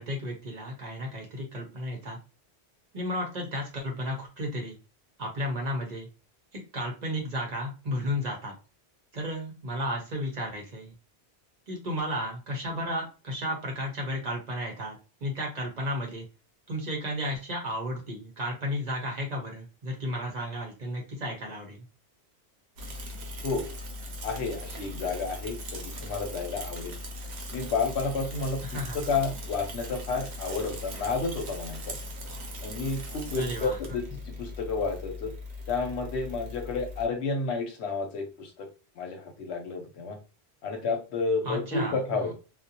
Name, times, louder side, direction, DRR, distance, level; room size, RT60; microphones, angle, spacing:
voice 1, 0.0-2.2 2.9-4.8 5.2-6.1 6.7-8.5 9.1-10.9 11.7-16.3 16.7-21.9 28.6-29.0 33.4-34.0 41.4-42.3, equal, 45° right, 0 dB, 0.7 m, -33 dB
Bicycle / Mechanisms, 22.8-37.1, left 1 dB, 80° right, 0.9 m, -39 dB
voice 2, 24.2-26.9 27.5-31.9 32.6-35.3 35.7-38.7 39.0-40.2 40.6-42.3, left 4 dB, 80° left, 4 dB, 1.0 m, -31 dB
2.4 x 2.0 x 2.7 m, 0.32 s
omnidirectional pair, 1.1 m